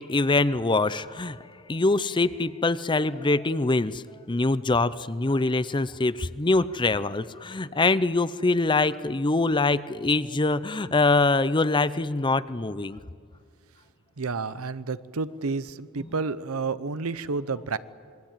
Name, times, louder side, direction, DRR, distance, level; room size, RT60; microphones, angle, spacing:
voice 1, 0.0-13.0 16.0-16.1, left 3 dB, 20° left, 0.6 m, -24 dB
voice 2, 14.2-17.8, right 4 dB, 85° right, 0.8 m, -30 dB
26.0 x 22.5 x 9.0 m
head